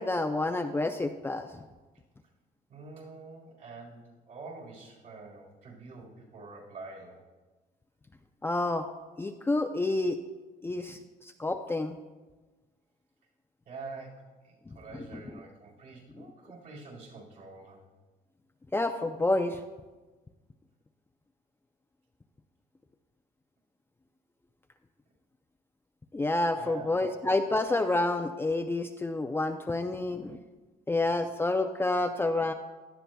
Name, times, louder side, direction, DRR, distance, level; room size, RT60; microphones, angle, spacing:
voice 1, 0.0-1.5 8.4-8.9 9.2-10.2 10.6-12.0 14.7-14.8 16.2-16.3 18.7-19.6 26.1-30.4 30.9-32.5, left 2 dB, 15° left, 5 dB, 0.5 m, -29 dB
voice 2, 2.7-7.2 13.7-17.8 26.6-26.9, right 3 dB, 60° right, -3 dB, 4.2 m, -46 dB
17.0 x 12.0 x 2.3 m, 1.3 s
cardioid pair, 110°, 17 cm